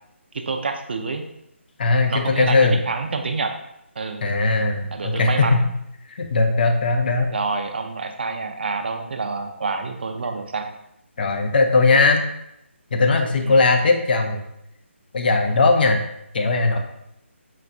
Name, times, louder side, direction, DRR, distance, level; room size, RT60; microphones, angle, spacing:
voice 1, 0.3-1.2 2.1-3.5 4.0-4.2 4.9-5.7 7.3-10.7 13.4-13.6, right 4 dB, 50° right, 6 dB, 0.5 m, -27 dB
voice 2, 1.8-2.8 4.2-5.6 6.1-7.3 11.2-12.2 12.9-14.4 15.1-16.0 16.3-16.8, left 3 dB, 45° left, 4 dB, 0.5 m, -19 dB
5.7 x 2.3 x 2.5 m, 0.80 s
figure-of-eight pair, 150°, 7 cm